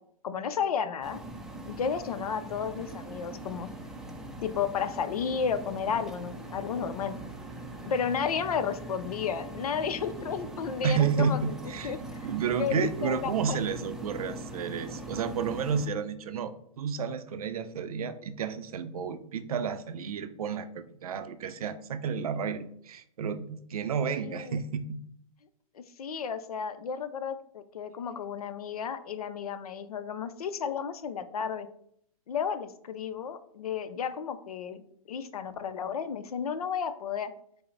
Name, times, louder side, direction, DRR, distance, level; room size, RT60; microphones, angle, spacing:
voice 1, 0.2-1.2 1.6-3.7 4.4-7.1 7.8-11.4 11.8-12.3 12.6-13.6 24.0-24.6 25.7-31.7 32.3-34.8 35.1-37.3, left 7 dB, 85° left, 12 dB, 0.5 m, -32 dB
sound 1, 1.0-15.9, right 1 dB, ahead, 0.4 m, -41 dB
voice 2, 10.8-12.0 12.2-25.0, right 6 dB, 80° right, 10 dB, 0.5 m, -31 dB
5.5 x 2.0 x 3.9 m, 0.68 s
hypercardioid pair, 125°, 19 cm